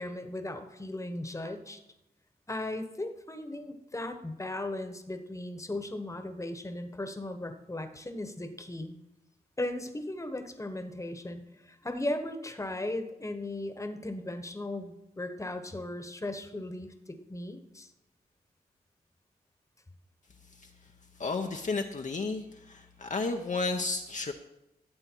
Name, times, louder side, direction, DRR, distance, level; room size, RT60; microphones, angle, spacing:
voice 1, 0.0-1.8 2.5-9.0 9.6-17.9, left 1 dB, 20° left, 7 dB, 1.2 m, -37 dB
voice 2, 21.2-24.3, left 3 dB, 50° left, 3 dB, 0.7 m, -32 dB
13.5 x 7.8 x 4.6 m, 0.91 s
wide cardioid pair, 80°, 17 cm